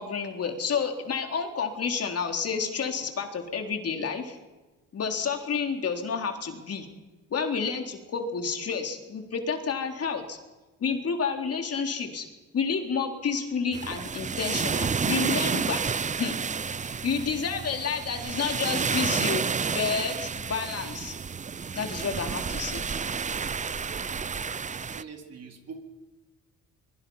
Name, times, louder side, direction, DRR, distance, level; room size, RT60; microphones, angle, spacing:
voice 1, 0.0-4.4 4.9-6.9 7.3-10.4 10.8-12.3 12.5-15.8 16.2-16.4 16.8-21.1 21.7-22.8, left 5 dB, 50° left, 4 dB, 3.7 m, -30 dB
sound 1, 13.7-25.0, right 6 dB, 25° right, 0.6 m, -30 dB
voice 2, 24.9-25.8, right 5 dB, 55° right, 3 dB, 4.2 m, -43 dB
25.0 x 22.5 x 5.7 m, 1.2 s
cardioid pair, 90°, 30 cm